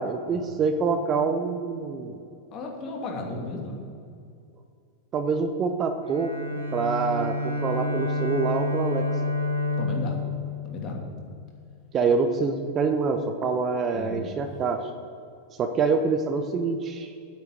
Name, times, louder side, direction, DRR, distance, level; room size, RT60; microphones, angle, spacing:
voice 1, 0.0-2.2 5.1-6.3 6.7-9.1 11.9-14.8 15.6-17.1, right 4 dB, 30° right, 7 dB, 0.8 m, -26 dB
voice 2, 2.5-3.8 9.8-10.2 10.6-11.0 13.9-14.4, left 2 dB, 35° left, 0 dB, 2.6 m, -34 dB
Bowed string instrument, 6.0-11.5, left 2 dB, 65° right, 2.0 m, -29 dB
8.9 x 7.6 x 8.4 m, 2.4 s
figure-of-eight pair, 90°, 0 cm